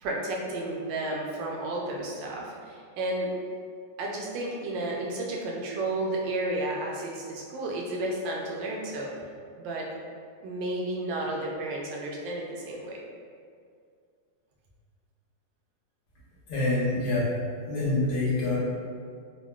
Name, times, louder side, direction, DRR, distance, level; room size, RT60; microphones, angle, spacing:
voice 1, 0.0-3.3 4.0-9.1 9.6-9.9 10.4-13.0, right 1 dB, 90° right, -2 dB, 1.3 m, -32 dB
voice 2, 16.5-17.3 17.7-18.6, left 2 dB, 65° left, -8 dB, 1.4 m, -26 dB
3.8 x 2.1 x 2.2 m, 2.2 s
omnidirectional pair, 2.0 m